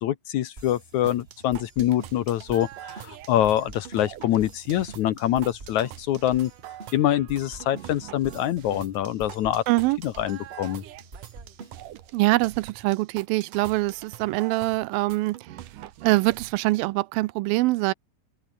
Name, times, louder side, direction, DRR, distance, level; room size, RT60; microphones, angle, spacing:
voice 1, 0.0-6.5 6.9-9.6 10.0-10.8, left 12 dB, 70° left, 2.1 m, -25 dB
sound 1, 0.6-12.1, right 2 dB, 15° right, 3.2 m, -47 dB
sound 2, 1.0-16.5, right 13 dB, 70° right, 2.7 m, -44 dB
voice 2, 9.7-10.0 12.1-15.4 16.0-17.9, right 20 dB, 90° right, 2.4 m, -23 dB
open air
omnidirectional pair, 4.1 m